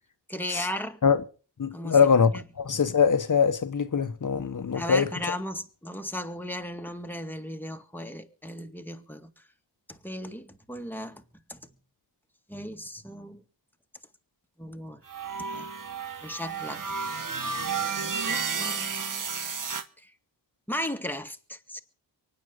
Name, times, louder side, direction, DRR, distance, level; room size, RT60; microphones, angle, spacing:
voice 1, 0.3-1.0 1.7-2.0 2.3-2.4 4.7-9.4 9.9-11.2 11.5-11.8 12.5-13.4 14.6-15.0 15.4-15.7 16.2-16.8 17.2-17.4 18.0-19.3 20.0-20.1 20.7-21.8, equal, 5° left, 2.0 m, -36 dB
voice 2, 1.6-2.3 2.6-5.1, left 6 dB, 40° left, 1.4 m, -22 dB
sound 1, 15.1-19.8, right 5 dB, 45° right, 1.5 m, -32 dB
24.0 x 9.5 x 5.2 m
cardioid pair, 55°, 46 cm